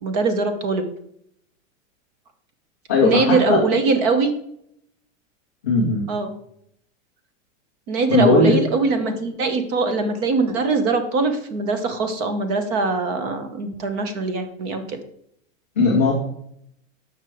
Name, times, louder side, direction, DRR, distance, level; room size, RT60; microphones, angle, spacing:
voice 1, 0.0-0.8 3.0-4.3 6.1-6.3 7.9-15.0, right 3 dB, 30° right, 8 dB, 0.9 m, -22 dB
voice 2, 2.9-3.6 5.6-6.1 8.1-8.6 15.8-16.1, left 3 dB, 10° left, -6 dB, 0.3 m, -18 dB
6.6 x 6.1 x 4.4 m, 0.72 s
supercardioid pair, 170°, 40 cm